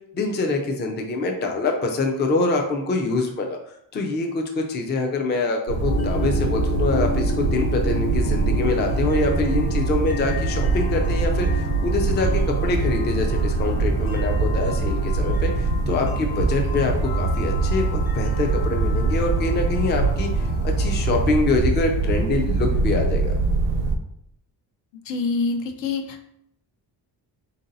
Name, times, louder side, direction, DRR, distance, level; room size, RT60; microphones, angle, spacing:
voice 1, 0.1-3.6 3.9-23.4, left 3 dB, 25° left, 3 dB, 0.4 m, -25 dB
sound 1, 5.7-24.0, right 3 dB, 60° right, 0.5 m, -23 dB
sound 2, 5.8-21.4, left 2 dB, 55° left, 1.0 m, -34 dB
voice 2, 25.0-26.4, left 4 dB, 75° left, 6 dB, 0.7 m, -26 dB
3.8 x 2.7 x 3.9 m, 0.76 s
wide cardioid pair, 175°, 44 cm